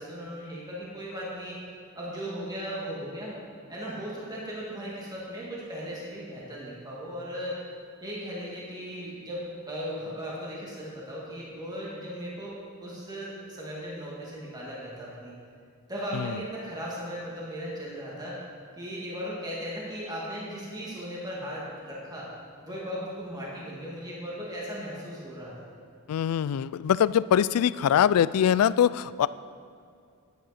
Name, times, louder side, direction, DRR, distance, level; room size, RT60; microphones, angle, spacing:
voice 1, 0.0-1.6 1.9-3.3 3.7-7.6 8.0-12.6 12.8-15.3 15.9-18.4 18.8-22.3 22.6-25.5, equal, 20° right, -6 dB, 2.2 m, -37 dB
voice 2, 26.1-29.3, left 9 dB, 85° left, 17 dB, 0.3 m, -23 dB
11.0 x 9.8 x 4.3 m, 2.4 s
head